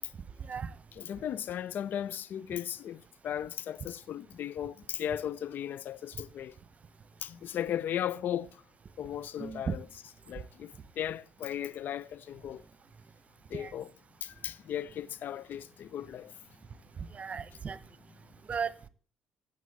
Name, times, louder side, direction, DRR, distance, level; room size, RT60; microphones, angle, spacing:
voice 1, 1.0-6.5 7.2-8.6 9.0-9.8 10.3-12.6 13.5-13.9 14.2-16.3, left 10 dB, 50° left, 0.7 m, -36 dB
voice 2, 9.4-9.7 13.5-13.7 17.1-17.8 18.5-18.7, right 6 dB, 35° right, 1.2 m, -35 dB
16.5 x 7.4 x 9.8 m
hypercardioid pair, 55°, 4 cm